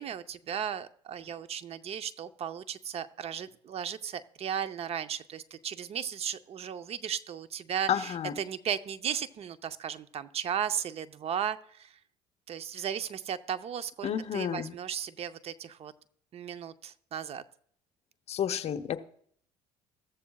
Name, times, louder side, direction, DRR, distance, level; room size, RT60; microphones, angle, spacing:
voice 1, 0.0-11.9 12.5-15.9 16.3-17.4, right 8 dB, 50° right, 11 dB, 0.7 m, -35 dB
voice 2, 7.9-8.3 14.0-14.7 18.3-19.0, left 9 dB, 50° left, 9 dB, 0.8 m, -31 dB
14.0 x 14.0 x 2.3 m, 0.63 s
supercardioid pair, 90°, 14 cm